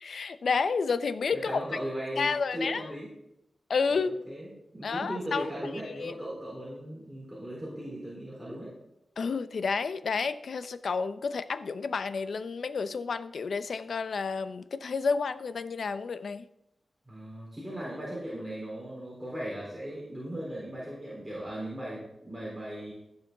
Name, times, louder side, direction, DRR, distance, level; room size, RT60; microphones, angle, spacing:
voice 1, 0.0-1.5 2.2-2.8 3.7-4.1 4.8-5.5 5.8-6.1 9.2-16.4, left 5 dB, 70° left, 12 dB, 0.6 m, -30 dB
voice 2, 1.3-3.1 3.9-8.7 17.1-22.9, equal, 5° right, -6 dB, 3.9 m, -38 dB
15.5 x 7.1 x 3.9 m, 0.82 s
wide cardioid pair, 90°, 0 cm